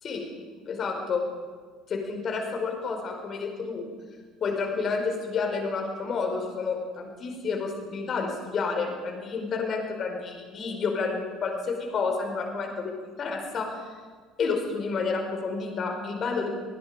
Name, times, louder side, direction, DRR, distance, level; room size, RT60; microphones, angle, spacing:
voice 1, 0.7-1.2 1.9-3.8 4.4-12.9 13.2-13.7 14.4-16.5, left 4 dB, 40° left, 3 dB, 5.0 m, -30 dB
28.0 x 20.0 x 5.1 m, 1.6 s
figure-of-eight pair, 60°, 0 cm